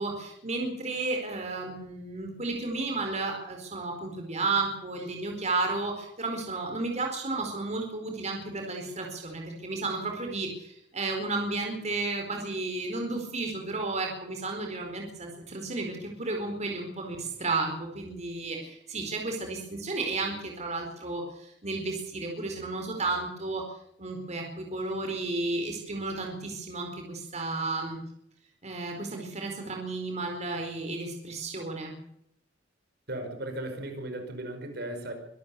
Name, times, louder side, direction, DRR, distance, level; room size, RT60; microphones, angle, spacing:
voice 1, 0.0-23.6 24.0-28.0 28.6-31.9, right 3 dB, 40° right, 2 dB, 4.5 m, -33 dB
voice 2, 33.1-35.1, right 1 dB, 60° right, 6 dB, 5.1 m, -36 dB
25.0 x 13.5 x 8.3 m, 0.74 s
head